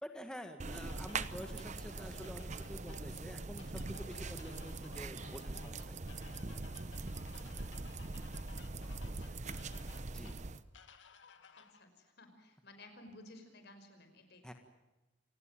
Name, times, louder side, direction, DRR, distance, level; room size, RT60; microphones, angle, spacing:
voice 1, 0.0-6.0 10.1-10.4 14.4-14.5, equal, 5° left, 5 dB, 1.7 m, -48 dB
sound 1, 0.6-10.6, right 3 dB, 40° right, 0.9 m, -42 dB
sound 2, 0.7-11.8, left 5 dB, 75° left, 2.1 m, -58 dB
voice 2, 7.3-7.7 9.1-9.8 11.5-14.5, left 1 dB, 60° left, 7 dB, 5.5 m, -57 dB
28.5 x 19.0 x 7.7 m, 1.1 s
head